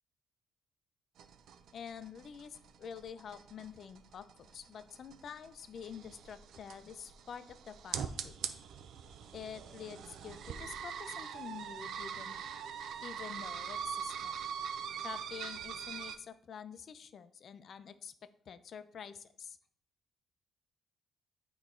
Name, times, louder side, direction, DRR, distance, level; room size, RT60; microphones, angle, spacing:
sound 1, 1.2-16.2, right 7 dB, 80° right, 0.4 m, -43 dB
voice 1, 1.7-8.4 9.3-12.4 13.0-14.4 15.0-18.1 18.5-19.6, left 7 dB, 60° left, 12 dB, 0.4 m, -47 dB
8.4 x 3.1 x 3.7 m, 0.63 s
cardioid pair, 90°, 0 cm